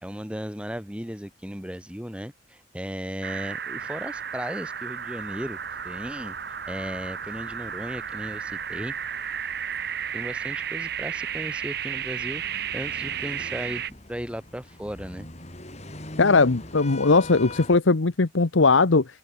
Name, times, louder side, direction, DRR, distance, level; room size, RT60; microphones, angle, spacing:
voice 1, 0.0-5.6 5.8-6.3 6.7-8.9 10.1-13.8 14.1-15.3, equal, 5° right, 2.7 m, -36 dB
sound 1, 3.2-13.9, right 8 dB, 55° right, 1.8 m, -33 dB
sound 2, 5.2-17.8, left 1 dB, 35° left, 6.6 m, -44 dB
voice 2, 16.2-19.0, left 3 dB, 80° left, 1.0 m, -19 dB
open air
head